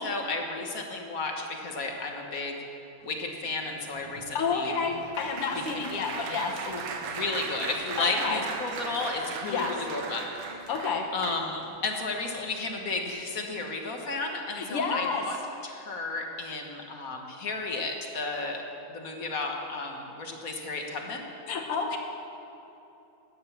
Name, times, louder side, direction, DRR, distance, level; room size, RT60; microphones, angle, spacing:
voice 1, 0.0-2.6 3.0-4.7 5.7-5.8 6.6-10.5 11.1-15.4 15.6-18.6 18.9-21.2, left 3 dB, 45° left, 2 dB, 1.5 m, -33 dB
Applause, 3.4-11.7 12.4-12.6 12.9-13.1, right 5 dB, 85° right, 2.0 m, -38 dB
voice 2, 4.3-6.7 8.0-8.4 9.4-9.8 10.7-11.1 14.5-15.2 21.5-22.0, left 5 dB, 85° left, 2 dB, 2.2 m, -30 dB
13.0 x 10.0 x 7.2 m, 3.0 s
omnidirectional pair, 2.4 m